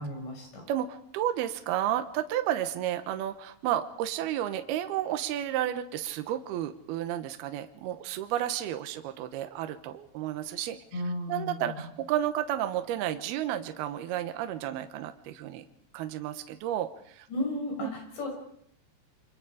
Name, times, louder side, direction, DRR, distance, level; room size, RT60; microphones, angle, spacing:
voice 1, 0.0-0.6 10.9-11.9 17.3-18.3, left 1 dB, 85° left, 2 dB, 8.3 m, -34 dB
voice 2, 0.7-10.8 11.3-15.7 15.9-17.3 17.8-17.9, right 11 dB, 75° right, 8 dB, 2.8 m, -32 dB
28.5 x 25.0 x 5.0 m, 0.68 s
omnidirectional pair, 4.9 m